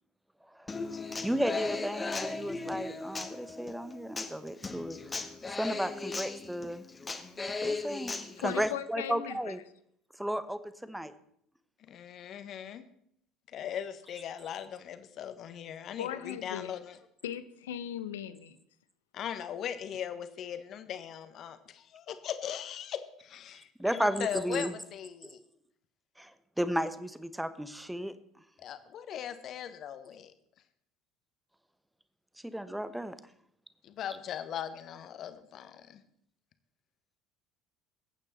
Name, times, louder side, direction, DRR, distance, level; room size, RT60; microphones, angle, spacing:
Human voice / Acoustic guitar, 0.7-8.7, left 3 dB, 20° left, 1.6 m, -37 dB
voice 1, 1.2-5.0 5.5-6.8 7.6-8.1 8.4-9.6 10.2-11.1 23.8-24.7 26.2-26.3 26.6-28.1 32.4-33.1, equal, 5° right, 12 dB, 1.1 m, -33 dB
voice 2, 8.4-9.5 16.0-16.8 17.2-18.6, left 10 dB, 75° left, 13 dB, 0.9 m, -38 dB
voice 3, 11.9-12.8 13.5-17.0 19.1-25.4 28.6-30.3 33.8-36.0, left 9 dB, 45° left, 11 dB, 1.3 m, -39 dB
22.0 x 8.9 x 4.3 m, 0.69 s
figure-of-eight pair, 60°, 0 cm